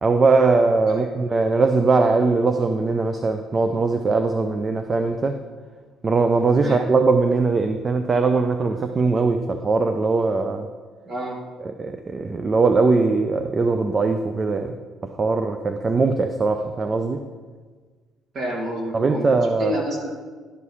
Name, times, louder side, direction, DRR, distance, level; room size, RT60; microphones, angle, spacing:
voice 1, 0.0-5.4 6.0-10.7 11.8-14.7 15.2-17.2 18.9-19.7, right 3 dB, 30° right, 7 dB, 0.5 m, -20 dB
voice 2, 11.1-11.4 18.3-19.3 19.6-20.1, right 1 dB, 45° right, -1 dB, 2.3 m, -29 dB
11.0 x 4.8 x 5.5 m, 1.5 s
cardioid pair, 105°, 0 cm